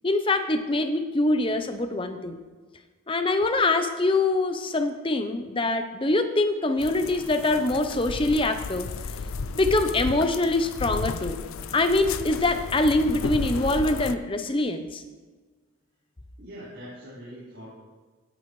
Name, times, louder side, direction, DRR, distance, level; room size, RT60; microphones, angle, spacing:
voice 1, 0.0-2.4 3.1-8.9 9.5-11.4 11.7-15.0, left 2 dB, 25° left, 8 dB, 0.7 m, -24 dB
sound 1, 6.8-14.2, left 4 dB, 70° left, 0.5 m, -33 dB
voice 2, 16.4-17.7, equal, 50° right, -11 dB, 4.3 m, -42 dB
16.5 x 10.5 x 3.2 m, 1.4 s
head